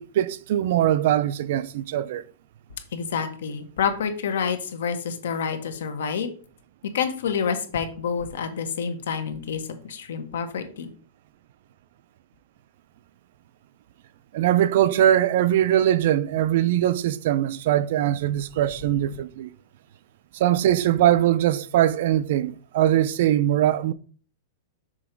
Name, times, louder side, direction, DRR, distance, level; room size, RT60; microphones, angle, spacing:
voice 1, 0.0-2.2 14.3-19.5 20.3-23.9, right 12 dB, 45° right, 0.3 m, -21 dB
voice 2, 2.9-6.3 6.9-10.9, left 6 dB, 75° left, 1.1 m, -28 dB
6.1 x 3.9 x 4.5 m
supercardioid pair, 180°, 0 cm